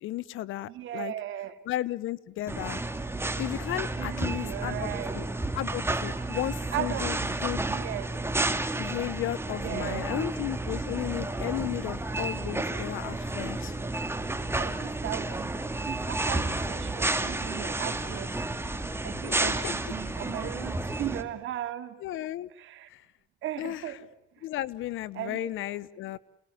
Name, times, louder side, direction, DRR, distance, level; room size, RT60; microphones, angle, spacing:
voice 1, 0.0-1.1 1.6-2.9 3.4-4.9 5.1-5.3 5.5-7.6 8.8-13.8 19.1-19.7 22.0-22.5 22.9-23.0 23.6-24.0 24.4-26.2, left 14 dB, 85° left, 18 dB, 1.0 m, -34 dB
voice 2, 0.7-1.5 4.0-5.2 6.7-7.3 7.7-8.1 9.6-10.2 14.5-18.4 19.0-22.0 22.6-22.9 23.4-24.1 25.1-25.7, right 12 dB, 85° right, 7 dB, 2.5 m, -37 dB
sound 1, 2.5-21.2, right 2 dB, 10° right, 2.4 m, -31 dB
29.5 x 19.5 x 9.5 m, 0.91 s
cardioid pair, 90°, 20 cm